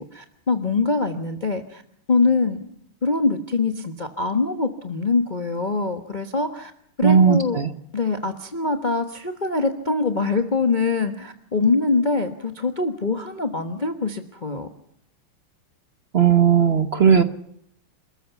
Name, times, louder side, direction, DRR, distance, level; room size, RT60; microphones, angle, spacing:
voice 1, 0.0-1.8 2.1-2.6 3.0-6.7 7.0-7.6 7.9-14.7, left 3 dB, 30° left, 7 dB, 1.1 m, -23 dB
voice 2, 7.0-7.7 16.1-17.2, right 7 dB, 50° right, 10 dB, 0.7 m, -16 dB
27.0 x 14.0 x 7.0 m, 0.69 s
omnidirectional pair, 2.4 m